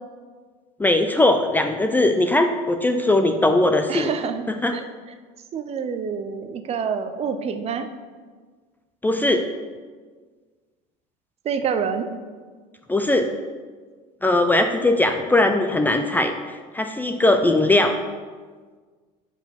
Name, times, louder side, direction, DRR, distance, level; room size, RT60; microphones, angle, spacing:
voice 1, 0.8-4.1 4.5-4.8 9.0-9.5 12.9-13.3 14.2-18.0, left 2 dB, 10° left, 6 dB, 0.4 m, -20 dB
voice 2, 3.9-4.4 4.7-4.8 5.5-7.9 11.4-12.1, right 6 dB, 35° right, 8 dB, 0.6 m, -27 dB
5.6 x 4.9 x 5.6 m, 1.5 s
supercardioid pair, 115°, 17 cm